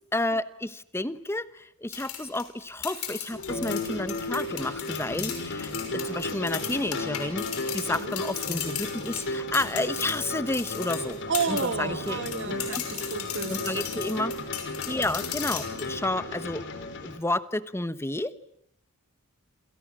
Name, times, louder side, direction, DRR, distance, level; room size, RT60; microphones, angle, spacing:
voice 1, 0.1-11.2 11.5-12.8 13.5-14.3 14.9-16.6 17.0-18.3, left 1 dB, 10° left, 14 dB, 1.1 m, -31 dB
sound 1, 1.9-11.7 12.0-15.9, left 10 dB, 80° left, 6.2 m, -36 dB
sound 2, 3.3-17.2, left 2 dB, 55° left, 3.8 m, -35 dB
voice 2, 11.3-14.0, right 5 dB, 60° right, 10 dB, 2.0 m, -31 dB
29.0 x 27.0 x 7.4 m, 0.69 s
head